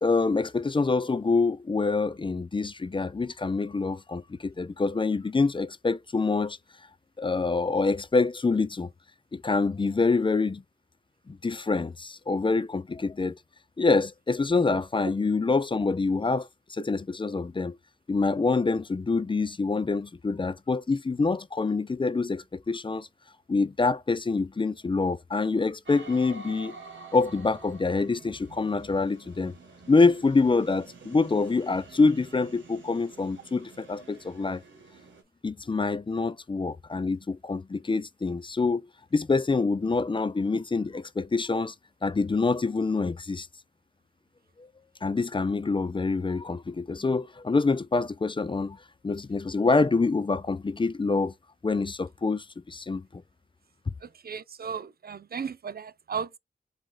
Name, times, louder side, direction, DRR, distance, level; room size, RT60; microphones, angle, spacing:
voice 1, 0.0-6.6 7.2-8.9 9.3-10.6 11.3-13.4 13.8-17.8 18.1-23.1 23.5-26.7 27.1-29.5 29.9-34.6 35.4-38.9 39.1-41.7 42.0-43.5 45.0-48.8 49.0-51.3 51.6-53.2, left 3 dB, 25° left, 0.4 m, -26 dB
sound 1, 25.9-35.2, right 3 dB, 90° right, 1.3 m, -49 dB
voice 2, 54.3-56.4, right 6 dB, 55° right, 0.4 m, -35 dB
4.6 x 2.6 x 3.7 m
cardioid pair, 50°, 19 cm